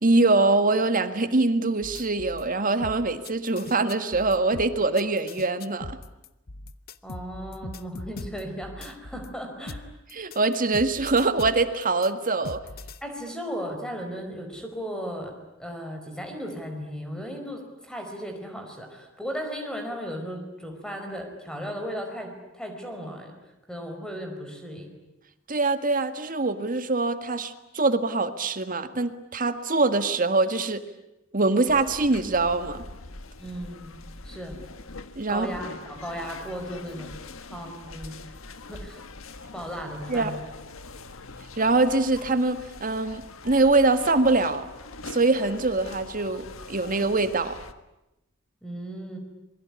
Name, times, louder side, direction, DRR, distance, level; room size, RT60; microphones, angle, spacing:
voice 1, 0.0-6.0 10.1-12.6 25.5-30.8 31.3-32.8 35.1-35.5 40.1-40.3 41.6-44.6 45.0-47.6, right 3 dB, 40° right, 10 dB, 1.7 m, -23 dB
sound 1, 1.8-2.4 2.8-9.3 9.7-13.0, left 2 dB, 50° left, 1.0 m, -40 dB
voice 2, 7.0-9.8 13.0-15.3 15.6-23.3 23.7-24.9 33.4-34.0 34.2-34.6 35.3-37.1 37.5-38.4 38.7-39.0 39.5-40.4 48.6-49.2, equal, 5° left, 3 dB, 4.9 m, -36 dB
sound 2, 31.7-47.7, left 3 dB, 75° left, 1.6 m, -43 dB
27.0 x 22.0 x 9.8 m, 0.94 s
head